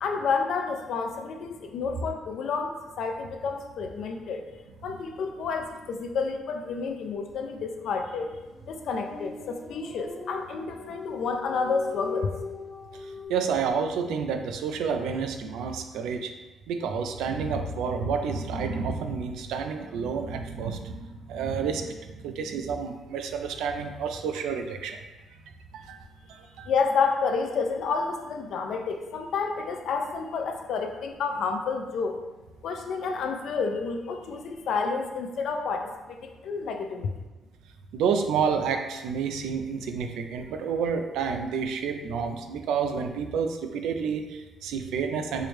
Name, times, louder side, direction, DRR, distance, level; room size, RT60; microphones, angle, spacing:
voice 1, 0.0-4.4 4.8-8.4 8.7-12.3 26.7-32.2 32.6-37.1, left 5 dB, 70° left, 4 dB, 0.4 m, -30 dB
sound 1, 8.5-13.3, left 4 dB, 25° left, 0.7 m, -39 dB
voice 2, 13.3-16.3 16.7-25.0 25.7-26.0 26.3-26.7 37.9-45.5, right 6 dB, 90° right, 6 dB, 0.3 m, -29 dB
4.6 x 2.0 x 3.2 m, 1.1 s
cardioid pair, 90°, 0 cm